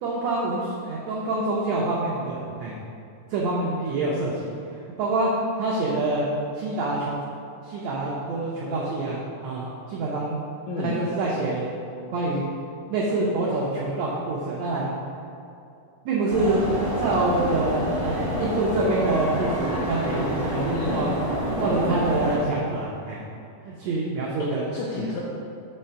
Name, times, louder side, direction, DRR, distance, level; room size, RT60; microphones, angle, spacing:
voice 1, 0.0-2.7 3.3-4.3 5.0-5.3 5.6-6.3 6.5-7.2 7.6-10.4 10.8-11.7 12.1-12.4 12.9-14.9 16.0-16.6 17.0-21.1 21.6-23.2 23.6-24.6 24.9-25.1, right 2 dB, 90° right, -4 dB, 1.5 m, -26 dB
voice 2, 10.7-11.1 20.7-21.1 24.4-25.2, left 4 dB, 85° left, -4 dB, 1.6 m, -32 dB
sound 1, 16.3-22.4, equal, 60° right, 0.5 m, -28 dB
5.6 x 3.3 x 5.5 m, 2.5 s
omnidirectional pair, 3.9 m